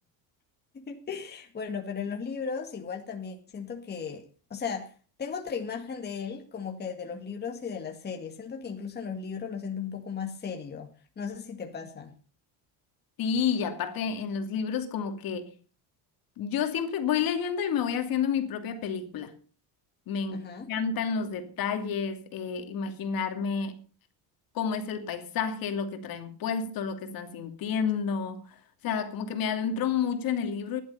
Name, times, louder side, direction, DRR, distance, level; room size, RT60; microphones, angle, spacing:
voice 1, 0.7-4.2 4.5-4.9 5.2-10.9 11.2-12.1 20.3-20.7, left 6 dB, 25° left, 2.1 m, -36 dB
voice 2, 13.2-15.5 16.4-19.3 20.1-20.4 20.7-23.8 24.5-30.8, left 7 dB, 50° left, 2.7 m, -30 dB
16.5 x 11.5 x 5.5 m
cardioid pair, 155°, 43 cm